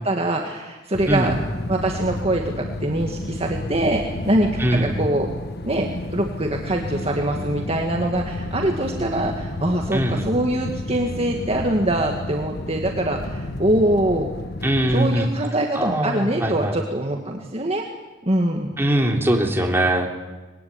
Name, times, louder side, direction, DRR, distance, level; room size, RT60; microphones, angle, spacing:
voice 1, 0.0-1.3 1.7-5.3 5.6-14.3 14.9-17.8 18.2-18.7, right 1 dB, 30° right, 1 dB, 2.1 m, -23 dB
sound 1, 0.9-15.0, left 1 dB, 55° left, 1.4 m, -31 dB
voice 2, 4.6-5.0 9.9-10.3 14.6-15.3 15.7-16.7 18.8-20.1, right 1 dB, 10° right, 1 dB, 3.4 m, -21 dB
25.5 x 21.0 x 9.8 m, 1.2 s
head